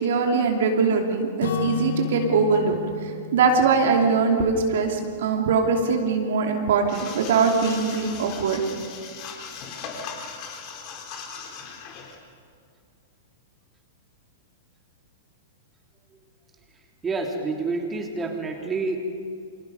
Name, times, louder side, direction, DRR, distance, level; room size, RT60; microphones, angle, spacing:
voice 1, 0.0-2.8 3.0-8.6, right 5 dB, 60° right, 2 dB, 2.9 m, -22 dB
Acoustic guitar / Strum, 1.4-5.4, left 9 dB, 65° left, 1.5 m, -34 dB
sound 1, 6.9-12.2, left 6 dB, 40° left, 3.9 m, -38 dB
voice 2, 17.0-19.0, right 3 dB, 15° right, 2 dB, 3.3 m, -28 dB
29.0 x 26.0 x 5.4 m, 2.2 s
figure-of-eight pair, 100°, 0 cm